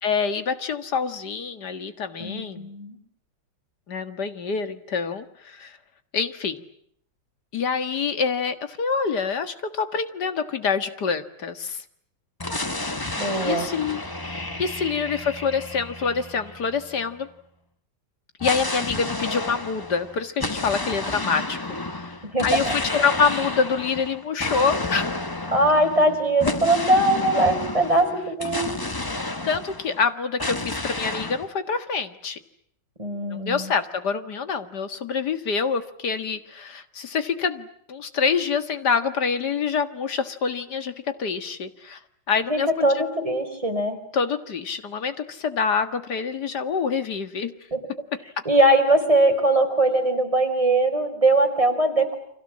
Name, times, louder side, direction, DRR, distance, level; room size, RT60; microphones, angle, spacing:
voice 1, 0.0-2.7 3.9-5.8 6.1-6.6 7.5-11.8 13.4-14.0 14.3-17.3 18.4-21.6 21.9-22.1 22.4-25.2 29.4-32.4 33.3-42.0 42.3-42.9 44.1-47.5, left 5 dB, 60° left, 10 dB, 2.2 m, -26 dB
voice 2, 2.2-3.0 13.2-13.7 22.3-22.7 25.5-28.8 33.0-33.7 42.5-44.0 47.7-47.8 48.4-52.2, right 1 dB, 15° right, 4 dB, 4.7 m, -21 dB
sound 1, 12.4-17.1 18.4-30.0 30.4-31.5, left 2 dB, 15° left, 1.0 m, -31 dB
30.0 x 25.5 x 7.5 m, 0.68 s
omnidirectional pair, 2.0 m